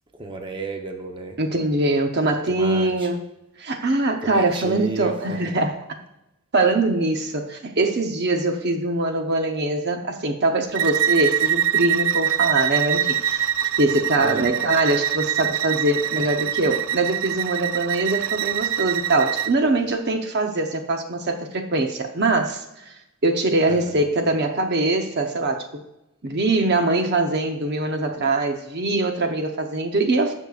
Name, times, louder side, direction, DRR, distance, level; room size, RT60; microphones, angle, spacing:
voice 1, 0.2-1.4 2.5-3.1 4.2-5.5 14.2-14.5 16.0-16.3 23.7-24.1, right 2 dB, 25° right, 3 dB, 0.9 m, -33 dB
voice 2, 1.4-3.2 3.6-5.8 6.5-13.5 13.8-22.6 23.2-25.8 26.2-30.3, right 2 dB, 50° right, 4 dB, 0.8 m, -22 dB
Bowed string instrument, 10.7-19.5, right 10 dB, 70° right, 0.3 m, -24 dB
19.0 x 6.4 x 2.5 m, 0.90 s
head